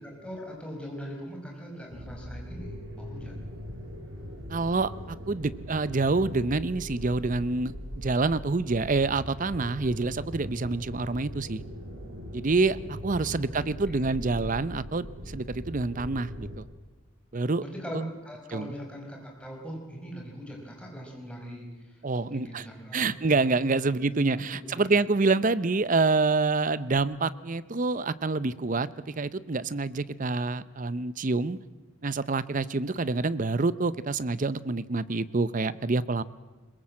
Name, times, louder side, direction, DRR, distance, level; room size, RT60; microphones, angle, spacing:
voice 1, 0.0-3.4 13.2-14.1 17.6-24.9, equal, 5° left, -1 dB, 4.9 m, -42 dB
sound 1, 1.9-16.6, equal, 65° right, 4.4 m, -40 dB
voice 2, 4.5-11.6 12.3-16.7 17.3-17.6 17.9-18.1 18.5-18.7 22.0-22.6 22.9-31.6 32.0-36.2, right 3 dB, 40° right, 17 dB, 0.6 m, -27 dB
22.0 x 21.5 x 7.6 m, 1.2 s
head